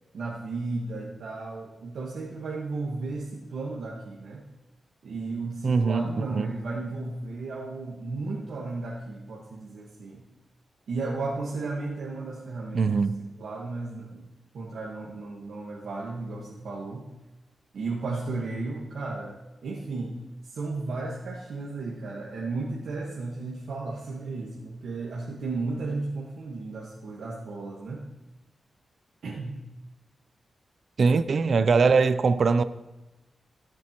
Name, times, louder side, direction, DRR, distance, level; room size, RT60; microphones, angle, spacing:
voice 1, 0.1-4.4 5.0-10.2 10.9-14.3 14.5-17.0 17.7-19.3 19.6-20.1 20.5-28.0 29.2-29.6, right 3 dB, 85° right, 1.4 m, -34 dB
voice 2, 5.6-6.5 12.7-13.2 31.0-32.6, right 4 dB, 60° right, 0.4 m, -22 dB
18.0 x 7.6 x 2.9 m
wide cardioid pair, 105°, 0 cm